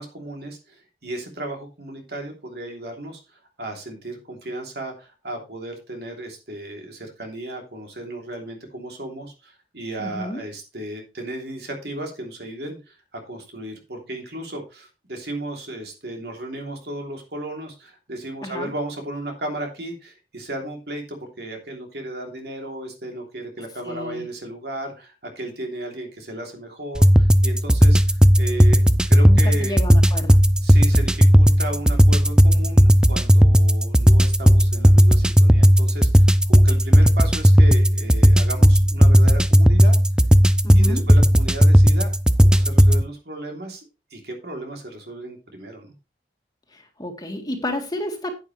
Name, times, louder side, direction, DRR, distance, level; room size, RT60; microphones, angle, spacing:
voice 1, 0.0-29.8 30.6-40.0 40.7-43.8 44.1-45.9, right 1 dB, 65° right, 3 dB, 3.1 m, -35 dB
voice 2, 10.0-10.4 18.4-18.7 23.8-24.2 29.2-30.5 40.6-41.1 46.7-48.4, left 1 dB, 20° left, 4 dB, 2.0 m, -31 dB
sound 1, 26.9-43.0, equal, 5° right, 0.5 m, -15 dB
10.5 x 9.0 x 3.2 m, 0.28 s
head